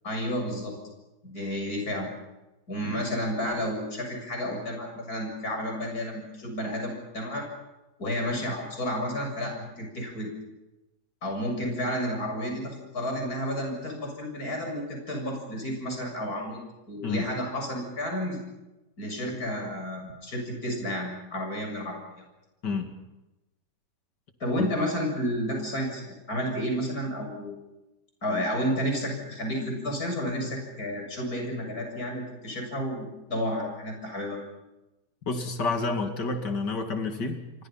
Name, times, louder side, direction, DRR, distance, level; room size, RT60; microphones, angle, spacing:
voice 1, 0.0-0.7 1.2-2.1 2.7-7.5 8.0-10.3 11.2-18.4 19.0-22.0 24.4-27.6 28.2-34.4, equal, 55° left, 2 dB, 7.7 m, -31 dB
voice 2, 35.3-37.7, left 3 dB, 75° left, 6 dB, 3.1 m, -29 dB
29.5 x 24.0 x 5.7 m, 0.99 s
omnidirectional pair, 1.9 m